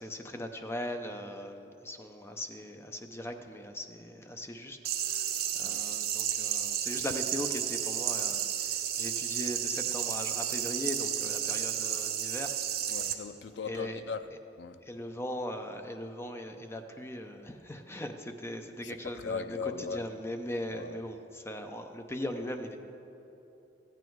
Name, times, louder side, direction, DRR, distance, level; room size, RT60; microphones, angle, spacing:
voice 1, 0.0-4.8 5.0-5.3 5.5-12.5 12.9-13.2 13.6-14.0 14.3-14.4 14.8-22.8, left 1 dB, 15° left, 5 dB, 0.6 m, -39 dB
sound 1, 4.8-13.1, right 10 dB, 60° right, 0.8 m, -32 dB
voice 2, 12.9-14.2 14.6-14.8 18.8-20.0 20.7-21.0, left 5 dB, 80° left, 11 dB, 0.5 m, -38 dB
14.5 x 9.2 x 4.7 m, 2.9 s
head